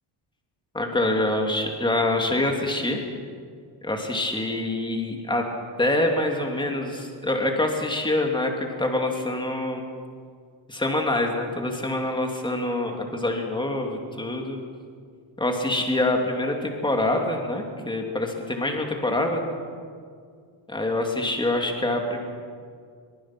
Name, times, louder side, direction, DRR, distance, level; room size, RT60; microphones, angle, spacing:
voice 1, 0.7-3.0 3.8-5.4 5.8-9.8 10.7-14.6 15.4-19.4 20.7-22.2, left 1 dB, 10° left, 2 dB, 2.5 m, -25 dB
22.5 x 22.0 x 6.0 m, 2.1 s
cardioid pair, 150°, 48 cm